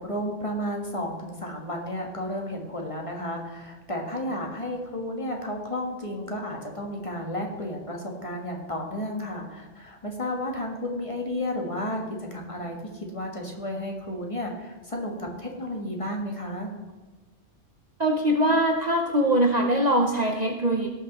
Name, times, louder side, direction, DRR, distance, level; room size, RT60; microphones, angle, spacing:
voice 1, 0.0-12.0 12.3-16.7, left 1 dB, 25° left, 1 dB, 1.6 m, -32 dB
voice 2, 18.0-20.9, right 1 dB, 40° right, 2 dB, 0.8 m, -22 dB
17.5 x 5.9 x 4.1 m, 1.3 s
omnidirectional pair, 1.3 m